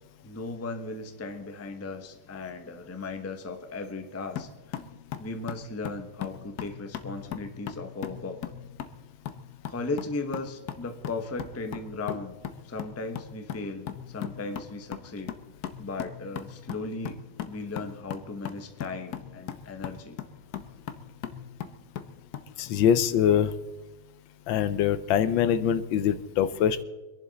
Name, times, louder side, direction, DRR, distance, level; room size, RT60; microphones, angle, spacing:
voice 1, 0.2-4.8 5.2-8.4 9.7-12.3 12.6-15.3 15.8-20.2, left 3 dB, 15° left, 6 dB, 0.6 m, -37 dB
sound 1, 4.4-22.5, left 9 dB, 60° left, 1.3 m, -39 dB
voice 2, 22.6-23.5 24.5-26.8, left 9 dB, 80° left, 13 dB, 1.5 m, -23 dB
24.5 x 11.0 x 4.1 m, 1.1 s
omnidirectional pair, 2.1 m